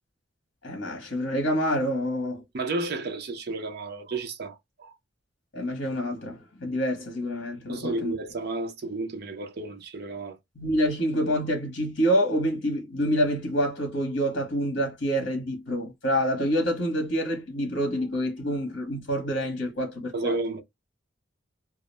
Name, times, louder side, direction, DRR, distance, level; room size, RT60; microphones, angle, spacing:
voice 1, 0.6-2.4 5.5-8.1 10.6-20.3, equal, 60° left, 0.9 m, -27 dB
voice 2, 2.5-4.9 7.7-10.4 20.1-20.6, right 3 dB, 55° right, 0.5 m, -32 dB
2.3 x 2.0 x 3.1 m
head